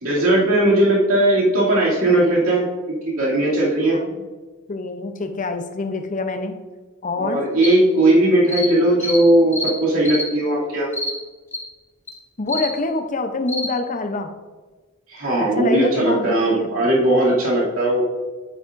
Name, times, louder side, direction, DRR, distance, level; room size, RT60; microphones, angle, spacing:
voice 1, 0.0-4.0 7.2-10.9 15.1-18.0, right 1 dB, 70° right, -5 dB, 2.5 m, -18 dB
voice 2, 3.9-4.3 4.7-6.5 7.0-7.4 12.4-14.3 15.6-16.9, left 3 dB, 35° left, 7 dB, 0.7 m, -26 dB
sound 1, 7.6-7.7 8.5-8.7 9.0-9.2 9.5-9.7 10.1-10.3 10.9-11.1 11.5-11.6 12.1-12.2 12.5-12.7 13.5-13.7, left 1 dB, 10° left, 1.1 m, -26 dB
8.9 x 8.3 x 2.6 m, 1.3 s
head